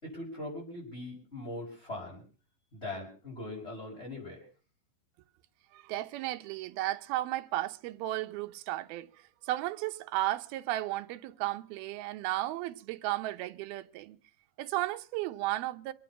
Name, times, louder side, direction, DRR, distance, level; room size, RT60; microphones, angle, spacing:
voice 1, 0.0-2.2 2.7-4.5, left 2 dB, 15° left, 6.5 m, -41 dB
voice 2, 5.7-14.2 14.6-15.9, right 16 dB, 75° right, 2.7 m, -34 dB
26.0 x 9.1 x 6.0 m
omnidirectional pair, 4.6 m